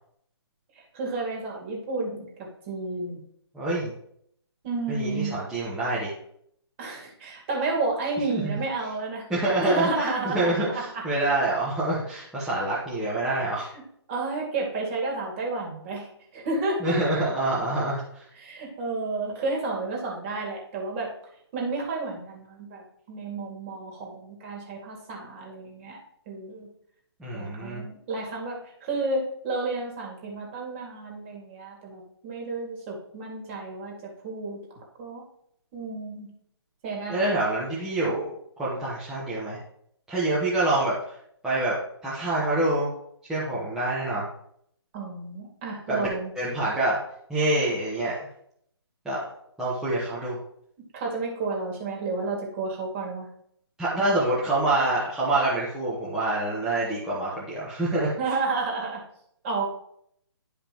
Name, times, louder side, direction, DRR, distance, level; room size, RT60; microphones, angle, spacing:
voice 1, 0.8-3.2 4.6-5.4 6.8-9.2 9.5-11.0 14.1-16.9 18.4-21.1 21.5-26.0 26.3-26.7 27.3-34.6 35.0-35.2 35.7-36.3 36.8-37.4 44.9-46.3 50.9-53.3 58.2-59.0 59.4-59.7, right 3 dB, 30° right, -1 dB, 2.3 m, -31 dB
voice 2, 3.5-3.9 4.9-6.1 8.3-8.5 9.3-13.7 16.8-18.3 27.2-27.8 37.1-38.3 38.6-39.6 40.1-41.2 41.4-41.8 42.0-42.9 43.3-44.3 45.9-46.1 46.3-47.0 47.3-48.1 49.0-49.2 49.6-50.4 53.8-58.1, right 2 dB, 5° right, -9 dB, 1.3 m, -26 dB
11.0 x 5.1 x 3.0 m, 0.69 s
figure-of-eight pair, 145°, 14 cm